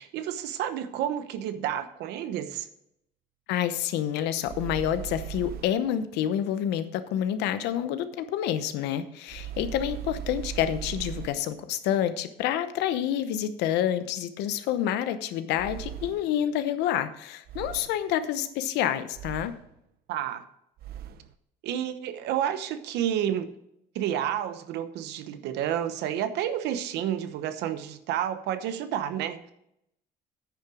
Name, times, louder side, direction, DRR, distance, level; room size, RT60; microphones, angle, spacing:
voice 1, 0.0-2.7 20.1-20.4 21.6-23.5 23.9-29.5, right 10 dB, 85° right, 11 dB, 1.0 m, -30 dB
voice 2, 3.5-19.5, left 10 dB, 90° left, 12 dB, 0.9 m, -28 dB
sound 1, 4.5-5.9 9.3-11.6 15.5-16.4 17.5-18.1 19.1-19.8 20.8-21.3, right 10 dB, 65° right, 0.7 m, -39 dB
9.6 x 6.8 x 4.9 m, 0.78 s
cardioid pair, 110°, 17 cm